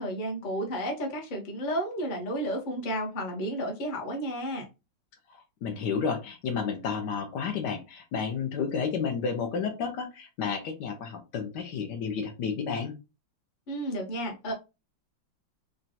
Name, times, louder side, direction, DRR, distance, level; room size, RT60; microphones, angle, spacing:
voice 1, 0.0-4.6 13.7-14.5, equal, 40° left, 0 dB, 0.7 m, -32 dB
voice 2, 5.6-12.9, left 6 dB, 70° left, 5 dB, 1.2 m, -31 dB
3.9 x 2.2 x 2.6 m, 0.27 s
omnidirectional pair, 2.1 m